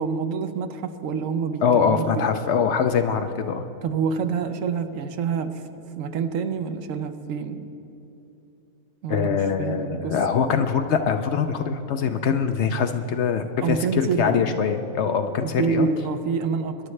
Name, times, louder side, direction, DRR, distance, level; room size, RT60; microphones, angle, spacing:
voice 1, 0.0-2.2 3.8-5.6 6.0-7.7 9.0-10.5 13.6-14.6 15.4-16.8, right 6 dB, 70° right, 9 dB, 1.0 m, -27 dB
voice 2, 1.6-3.7 9.1-15.9, left 6 dB, 65° left, 7 dB, 0.8 m, -23 dB
21.0 x 11.0 x 3.2 m, 2.9 s
omnidirectional pair, 1.4 m